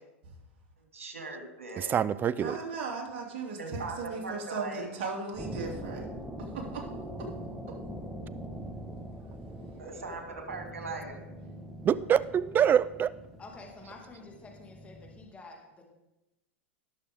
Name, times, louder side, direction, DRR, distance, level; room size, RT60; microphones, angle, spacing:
voice 1, 0.9-2.1 3.6-4.9 9.8-11.2, right 3 dB, 90° right, 3 dB, 2.4 m, -39 dB
voice 2, 1.8-2.6 11.8-13.1, right 9 dB, 25° right, 19 dB, 0.4 m, -25 dB
voice 3, 2.4-6.1 6.4-6.9 7.2-7.3, right 4 dB, 55° right, 0 dB, 2.9 m, -37 dB
sound 1, 5.3-15.2, equal, 5° right, 1.5 m, -43 dB
voice 4, 13.4-15.9, left 3 dB, 20° left, 1 dB, 2.4 m, -49 dB
18.5 x 6.8 x 3.7 m, 0.94 s
hypercardioid pair, 100°, 7 cm